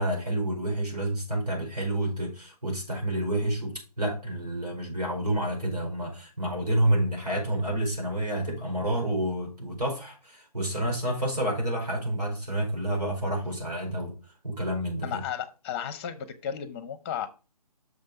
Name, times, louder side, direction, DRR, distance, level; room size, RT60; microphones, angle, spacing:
voice 1, 0.0-14.2 14.4-15.2, right 1 dB, 85° right, 4.9 m, -29 dB
voice 2, 15.0-17.3, left 9 dB, 20° left, 0.8 m, -34 dB
6.5 x 5.4 x 5.1 m
figure-of-eight pair, 145°, 20 cm